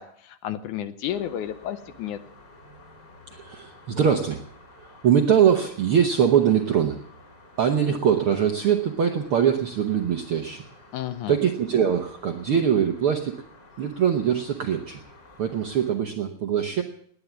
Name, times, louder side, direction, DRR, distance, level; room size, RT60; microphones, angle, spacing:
voice 1, 0.0-2.2 10.9-11.4, left 11 dB, 75° left, 12 dB, 2.1 m, -32 dB
sound 1, 1.1-16.0, left 2 dB, 30° left, 5.1 m, -51 dB
voice 2, 3.3-4.4 4.8-7.0 7.6-10.6 11.3-13.4 13.8-15.0 15.4-16.8, right 8 dB, 70° right, 5 dB, 1.3 m, -22 dB
19.0 x 10.5 x 7.2 m, 0.64 s
omnidirectional pair, 3.9 m